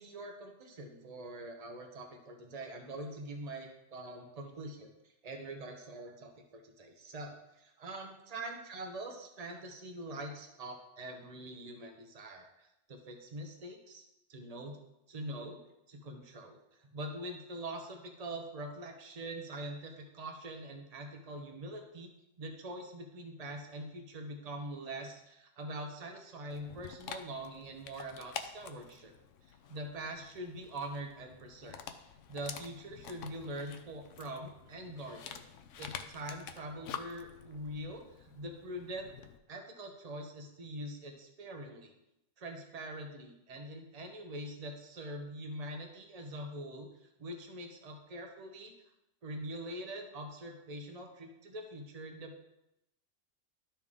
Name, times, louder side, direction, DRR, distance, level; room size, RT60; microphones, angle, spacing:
voice 1, 0.0-14.8 15.1-15.6 15.9-22.1 22.4-29.1 29.5-31.8 32.3-35.4 35.8-39.1 39.5-41.9 42.4-48.7 49.2-52.4, right 1 dB, 35° right, 3 dB, 1.0 m, -44 dB
Dog, 26.5-39.4, left 8 dB, 85° left, 1.0 m, -48 dB
12.0 x 4.4 x 3.6 m, 0.87 s
omnidirectional pair, 1.3 m